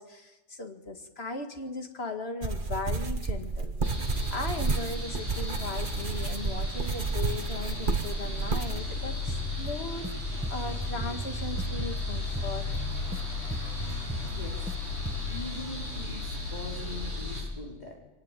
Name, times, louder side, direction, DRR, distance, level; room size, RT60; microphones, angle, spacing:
voice 1, 0.0-12.9, left 3 dB, 55° left, 5 dB, 2.3 m, -38 dB
sound 1, 2.4-8.8, right 3 dB, 40° right, 1.5 m, -30 dB
sound 2, 3.8-17.4, left 2 dB, 70° left, 7.9 m, -35 dB
sound 3, 9.3-10.1 10.4-13.2 13.5-14.7 15.1-15.4, right 2 dB, 10° right, 1.0 m, -38 dB
voice 2, 14.2-14.7 15.3-18.0, left 3 dB, 35° left, -2 dB, 4.4 m, -42 dB
23.0 x 18.5 x 9.1 m, 1.1 s
omnidirectional pair, 1.3 m